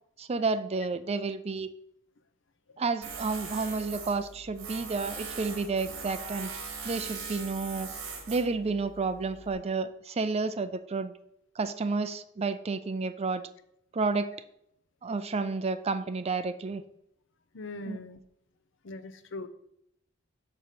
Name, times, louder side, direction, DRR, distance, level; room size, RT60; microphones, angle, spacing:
voice 1, 0.2-1.7 2.8-6.5 6.8-7.9 8.3-11.1 11.6-13.4 13.9-14.3 15.0-16.8 17.9-18.0, right 4 dB, 30° right, 11 dB, 0.4 m, -31 dB
Tools, 3.0-9.5, right 5 dB, 70° right, 1.6 m, -41 dB
voice 2, 17.5-18.2 18.8-19.5, left 2 dB, 65° left, 12 dB, 0.6 m, -40 dB
6.8 x 4.9 x 5.7 m, 0.75 s
head